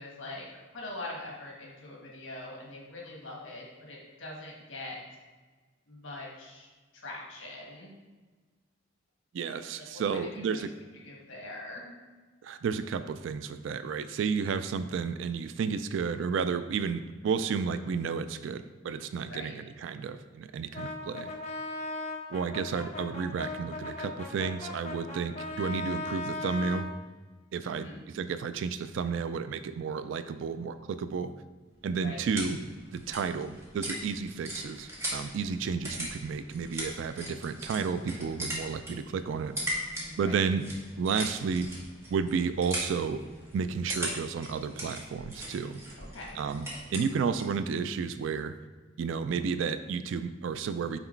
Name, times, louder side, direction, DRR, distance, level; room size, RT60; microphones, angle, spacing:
voice 1, 0.0-5.0 5.9-6.7 6.9-7.9 9.3-10.6 11.0-11.9 19.2-19.5 27.6-28.0 32.0-32.2 40.0-40.4 46.0-46.4, left 2 dB, 75° left, -2 dB, 1.4 m, -43 dB
voice 2, 9.3-10.7 12.4-21.3 22.3-26.9 27.5-31.3 31.8-32.6 32.9-39.5 40.2-40.6 41.0-41.7 42.1-43.2 43.5-45.8 46.4-46.7 46.9-48.5 49.0-51.0, right 5 dB, 70° right, 11 dB, 0.3 m, -32 dB
Brass instrument, 20.7-26.9, left 2 dB, 35° left, 1.1 m, -37 dB
sound 1, 31.7-47.6, equal, 15° right, 1.3 m, -40 dB
5.9 x 4.0 x 4.4 m, 1.3 s
head